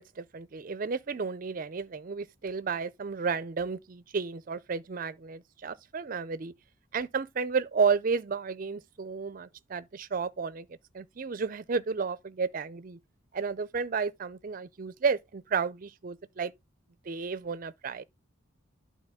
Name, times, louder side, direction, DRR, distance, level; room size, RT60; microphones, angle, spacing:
voice 1, 0.0-6.5 6.9-10.7 10.9-13.0 13.3-16.5 17.1-18.0, right 5 dB, 40° right, 0.4 m, -32 dB
11.5 x 4.0 x 3.5 m
head